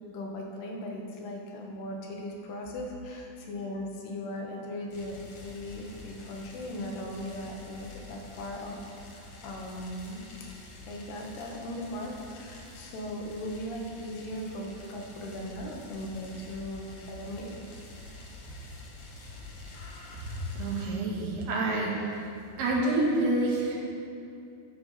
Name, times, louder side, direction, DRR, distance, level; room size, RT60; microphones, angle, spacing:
voice 1, 0.1-5.2 5.4-8.8 9.0-10.3 10.8-17.5, left 1 dB, 85° left, 0 dB, 3.3 m, -38 dB
sound 1, 4.9-20.8, left 2 dB, 60° left, 2.2 m, -47 dB
voice 2, 20.5-22.3 22.6-23.8, right 2 dB, 85° right, -3 dB, 3.6 m, -28 dB
12.0 x 5.3 x 5.7 m, 2.6 s
omnidirectional pair, 4.5 m